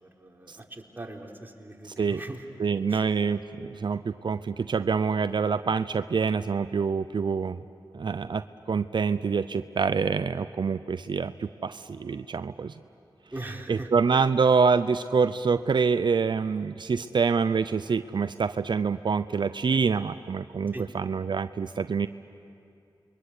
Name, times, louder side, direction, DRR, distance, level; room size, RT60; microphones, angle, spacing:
voice 1, 0.0-2.5 2.9-3.0 13.3-13.9 20.7-20.9, right 2 dB, 25° right, 0 dB, 3.8 m, -40 dB
voice 2, 2.6-7.6 7.9-12.8 13.7-22.1, right 5 dB, 60° right, 12 dB, 0.6 m, -26 dB
28.5 x 23.5 x 8.4 m, 2.5 s
cardioid pair, 45°, 9 cm